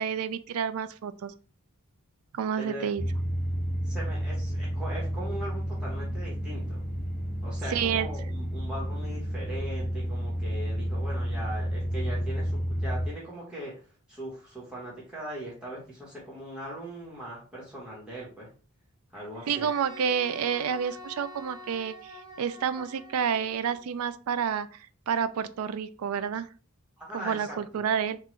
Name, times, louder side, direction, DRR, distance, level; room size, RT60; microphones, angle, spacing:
voice 1, 0.0-1.3 2.3-3.0 7.7-8.1 19.5-24.7 25.1-26.5 27.1-28.2, right 7 dB, 85° right, 14 dB, 0.4 m, -29 dB
voice 2, 2.6-2.9 3.8-6.8 7.4-13.8 14.1-18.5 19.1-19.7 27.0-27.8, right 1 dB, 5° right, -6 dB, 1.3 m, -40 dB
sound 1, 3.0-13.1, equal, 50° left, 1.3 m, -31 dB
Wind instrument woodwind instrument, 19.5-23.8, left 1 dB, 20° right, 0.5 m, -46 dB
3.7 x 2.4 x 3.2 m, 0.38 s
head